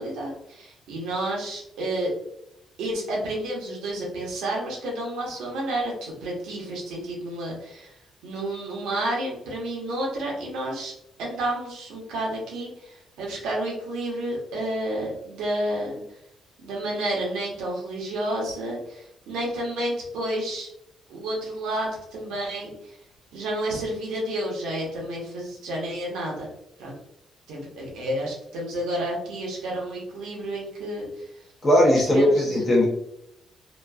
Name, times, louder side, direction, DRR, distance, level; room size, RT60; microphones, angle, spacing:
voice 1, 0.0-2.1 2.8-7.9 8.2-10.9 11.2-16.0 16.6-20.7 21.1-23.0 23.3-26.5 26.8-27.0 27.5-31.1 32.0-32.7, right 1 dB, 90° right, -2 dB, 1.0 m, -30 dB
voice 2, 31.6-32.9, left 1 dB, 30° left, -4 dB, 0.8 m, -18 dB
2.9 x 2.4 x 2.3 m, 0.76 s
cardioid pair, 90°, 0 cm